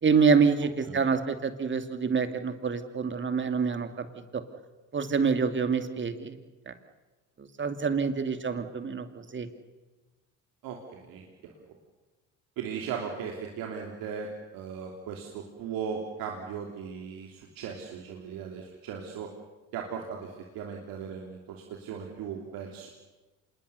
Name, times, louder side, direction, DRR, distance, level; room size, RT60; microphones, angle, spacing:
voice 1, 0.0-4.1 4.3-4.4 4.9-6.4 6.7-6.8 7.4-9.5, right 5 dB, 30° right, 8 dB, 2.5 m, -26 dB
voice 2, 10.6-11.7 12.6-19.3 19.7-22.9, right 7 dB, 70° right, 1 dB, 3.1 m, -38 dB
26.5 x 21.0 x 7.0 m, 1.2 s
supercardioid pair, 80°, 36 cm